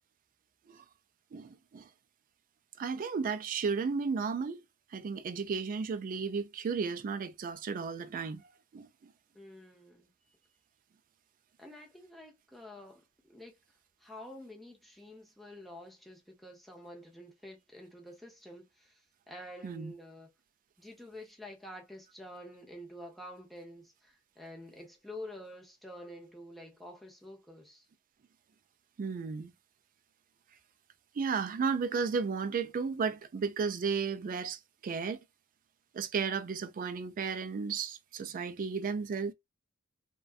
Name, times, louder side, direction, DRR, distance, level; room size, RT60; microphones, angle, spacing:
voice 1, 1.3-1.9 2.8-4.6 4.9-8.4 8.7-8.9 19.6-19.9 29.0-29.5 31.2-35.2 35.9-39.3, right 5 dB, 40° right, 0.3 m, -34 dB
voice 2, 9.3-10.1 11.6-13.5 14.0-20.3 20.8-27.9, left 1 dB, ahead, 0.6 m, -48 dB
2.5 x 2.2 x 2.3 m
head